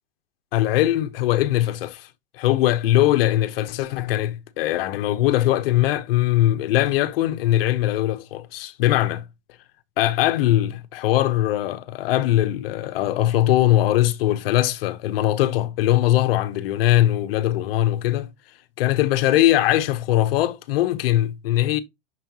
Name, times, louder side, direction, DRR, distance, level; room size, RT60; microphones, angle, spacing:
voice 1, 0.5-2.1 2.3-9.3 10.0-18.3 18.8-21.8, left 14 dB, 55° left, 0.8 m, -21 dB
6.2 x 5.5 x 2.9 m
supercardioid pair, 160°, 34 cm